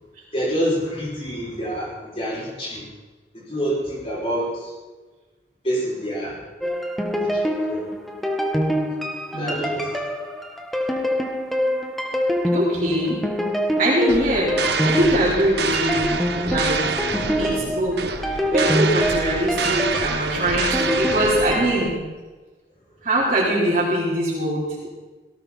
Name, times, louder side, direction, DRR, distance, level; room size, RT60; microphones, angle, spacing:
voice 1, 0.3-2.9 3.5-4.7 5.6-6.4 7.1-7.9 9.0-9.9, equal, 30° left, -5 dB, 6.0 m, -27 dB
sound 1, 6.6-21.9, equal, ahead, 1.2 m, -25 dB
voice 2, 9.3-9.8 12.5-13.2 13.8-17.0 17.4-21.9 23.0-24.9, right 1 dB, 40° right, -9 dB, 4.3 m, -22 dB
sound 2, 14.1-22.0, right 4 dB, 65° right, 1.1 m, -27 dB
18.0 x 17.5 x 4.2 m, 1.3 s
head